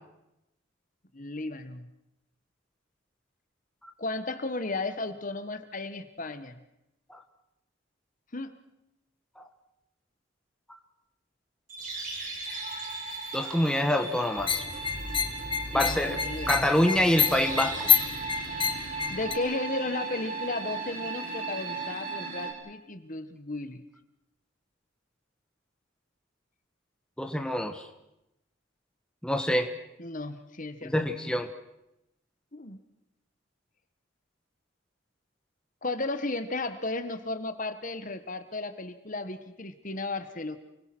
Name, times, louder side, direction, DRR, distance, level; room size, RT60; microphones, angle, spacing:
voice 1, 1.1-1.9 4.0-6.6 8.3-8.5 15.7-16.6 19.1-23.8 30.0-30.9 32.5-32.8 35.8-40.6, left 2 dB, 40° left, 9 dB, 1.5 m, -34 dB
sound 1, 11.7-22.5, right 4 dB, 40° right, 5.7 m, -37 dB
voice 2, 13.3-14.7 15.7-16.2 16.5-17.9 27.2-27.9 29.2-29.7 30.8-31.5, left 1 dB, 5° left, 5 dB, 1.4 m, -26 dB
sound 2, 14.4-19.3, left 7 dB, 25° left, 1.4 m, -28 dB
29.0 x 22.0 x 6.2 m, 0.89 s
head